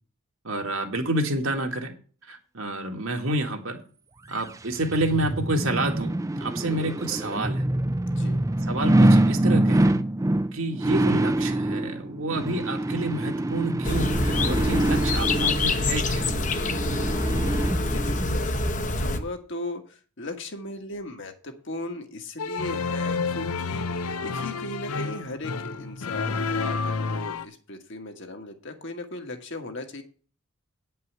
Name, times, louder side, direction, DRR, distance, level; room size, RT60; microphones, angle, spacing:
voice 1, 0.4-1.9 2.2-3.8 4.3-7.6 8.6-10.0 10.5-16.3, right 2 dB, 60° right, 3 dB, 1.8 m, -29 dB
sound 1, 4.4-18.3 18.7-18.8, right 1 dB, 15° right, 0.4 m, -25 dB
voice 2, 8.0-8.4 16.6-16.8 17.9-30.0, left 2 dB, 55° left, 5 dB, 1.6 m, -37 dB
sound 2, 13.8-19.2, left 2 dB, 35° left, 0.9 m, -25 dB
sound 3, 22.4-27.4, left 4 dB, 80° left, 0.7 m, -30 dB
9.3 x 5.5 x 8.0 m, 0.41 s
head